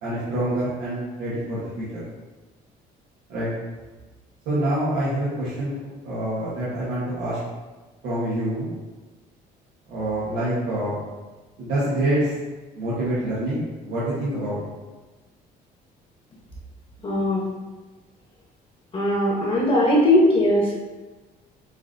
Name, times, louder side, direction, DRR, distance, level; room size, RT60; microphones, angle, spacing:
voice 1, 0.0-2.0 3.3-3.5 4.4-5.7 6.0-7.4 8.0-8.7 9.9-11.0 11.6-12.3 12.7-14.6, right 1 dB, 90° right, -11 dB, 1.3 m, -26 dB
voice 2, 17.0-17.4 18.9-20.8, left 1 dB, 35° left, -3 dB, 1.0 m, -19 dB
7.0 x 2.7 x 2.6 m, 1.2 s
cardioid pair, 110°, 17 cm